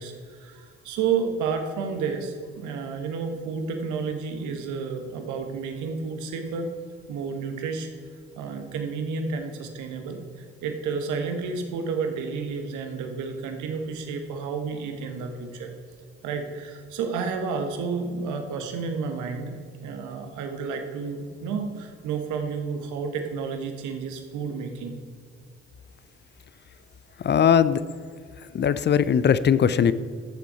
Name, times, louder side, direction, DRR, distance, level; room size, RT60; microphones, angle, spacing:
voice 1, 0.0-6.7 7.1-7.9 8.3-15.7 16.2-25.0, right 5 dB, 70° right, 5 dB, 1.4 m, -31 dB
voice 2, 27.2-27.8 28.5-29.9, left 8 dB, 35° left, 15 dB, 0.5 m, -19 dB
14.0 x 7.0 x 4.3 m, 2.1 s
hypercardioid pair, 50°, 31 cm